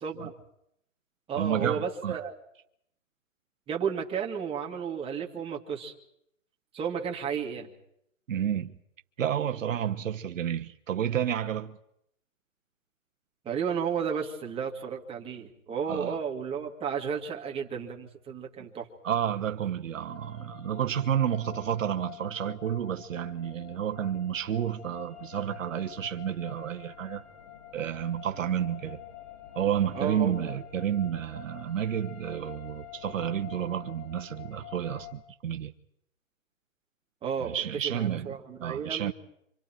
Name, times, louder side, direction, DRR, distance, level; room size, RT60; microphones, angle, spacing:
voice 1, 0.0-0.3 1.3-2.3 3.7-5.9 6.7-7.7 13.4-18.9 29.9-30.5 37.2-39.1, right 7 dB, 15° right, 2.3 m, -33 dB
voice 2, 1.3-2.2 8.3-8.8 9.2-11.8 15.9-16.2 19.0-27.2 27.7-29.0 29.5-35.7 37.4-39.1, right 9 dB, 70° right, 1.2 m, -30 dB
sound 1, 20.1-35.1, left 11 dB, 45° left, 5.4 m, -47 dB
28.5 x 26.0 x 4.6 m
hypercardioid pair, 145°, 41 cm